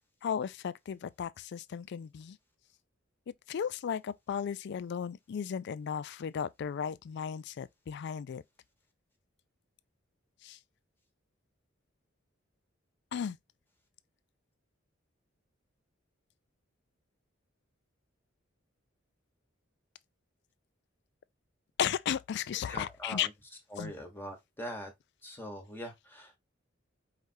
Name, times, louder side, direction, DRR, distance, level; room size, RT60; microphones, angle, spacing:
voice 1, 0.2-2.4 3.5-8.4 10.4-10.6 13.1-13.4 21.8-23.3 23.8-23.9, left 8 dB, 55° left, 0.3 m, -35 dB
voice 2, 22.7-23.3 23.7-24.9 25.2-26.4, equal, 10° left, 1.2 m, -42 dB
4.9 x 3.3 x 2.6 m
head